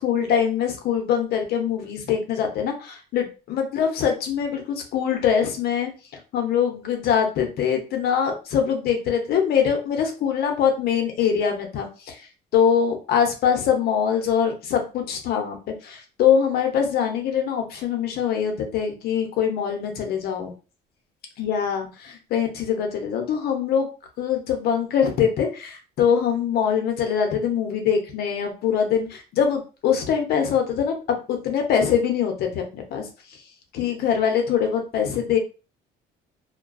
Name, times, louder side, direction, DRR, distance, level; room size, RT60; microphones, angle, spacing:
voice 1, 0.0-5.9 6.3-11.9 12.5-15.6 15.8-20.5 21.4-23.9 24.2-30.9 31.3-33.0 33.7-35.4, left 8 dB, 70° left, 4 dB, 0.7 m, -23 dB
2.3 x 2.2 x 2.5 m, 0.33 s
cardioid pair, 110°, 17 cm